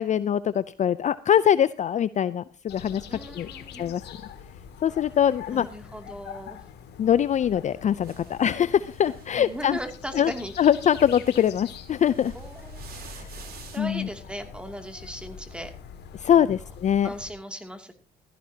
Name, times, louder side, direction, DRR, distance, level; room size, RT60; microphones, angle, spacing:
voice 1, 0.0-3.1 3.4-3.5 3.8-4.0 4.8-5.7 7.0-9.8 10.2-10.3 10.6-12.3 13.8-14.1 16.2-17.1, left 9 dB, 40° left, 16 dB, 0.5 m, -23 dB
sound 1, 2.7-17.3, left 7 dB, 65° left, 2.0 m, -44 dB
voice 2, 3.1-3.9 5.5-6.6 9.3-10.5 12.3-12.9 13.7-15.7 16.4-16.6 17.0-17.9, equal, 5° right, 6 dB, 2.6 m, -38 dB
sound 2, 8.0-13.8, right 6 dB, 55° right, 3.7 m, -50 dB
16.0 x 14.5 x 2.8 m, 0.33 s
supercardioid pair, 85°, 19 cm